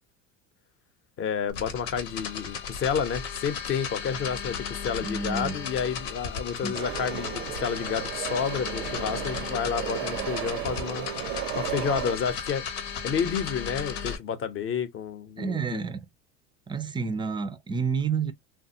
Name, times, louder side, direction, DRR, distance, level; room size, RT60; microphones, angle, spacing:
voice 1, 1.2-11.1 11.5-12.6 13.0-15.8, left 7 dB, 35° left, 0.7 m, -30 dB
sound 1, 1.5-14.2, left 6 dB, 85° left, 1.0 m, -35 dB
voice 2, 5.0-5.5 6.6-6.7 15.4-16.1 16.7-18.3, right 5 dB, 15° right, 0.3 m, -29 dB
sound 2, 6.7-12.2, right 13 dB, 75° right, 0.5 m, -34 dB
3.3 x 2.2 x 2.7 m
supercardioid pair, 100°, 36 cm